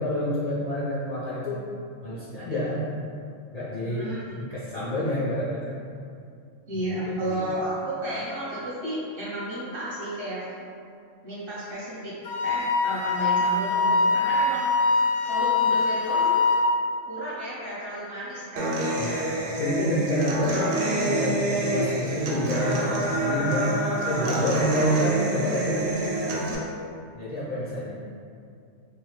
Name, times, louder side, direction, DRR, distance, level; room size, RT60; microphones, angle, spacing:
voice 1, 0.0-1.6 2.0-2.8 3.5-4.1 4.3-5.8 6.7-7.5 19.0-20.6 21.0-23.7 24.0-26.1 27.1-27.9, equal, 55° left, -11 dB, 0.4 m, -28 dB
voice 2, 3.8-4.2 6.7-10.4 11.2-12.1 12.4-14.7 15.2-16.4 17.1-18.7, right 1 dB, 25° right, -9 dB, 0.7 m, -32 dB
Wind instrument woodwind instrument, 12.2-16.7, left 3 dB, 90° left, 1.0 m, -23 dB
Human voice / Acoustic guitar, 18.6-26.5, right 1 dB, 60° right, 0.7 m, -27 dB
2.9 x 2.2 x 3.2 m, 2.4 s
omnidirectional pair, 1.4 m